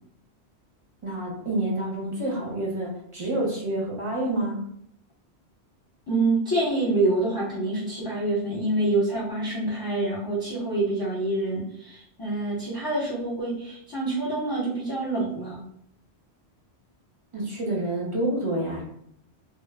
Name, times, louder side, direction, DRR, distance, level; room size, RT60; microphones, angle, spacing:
voice 1, 1.0-4.6 17.3-18.8, right 1 dB, 35° right, -3 dB, 0.5 m, -28 dB
voice 2, 6.1-15.6, right 2 dB, 25° left, -7 dB, 0.6 m, -26 dB
2.0 x 2.0 x 3.3 m, 0.71 s
omnidirectional pair, 1.1 m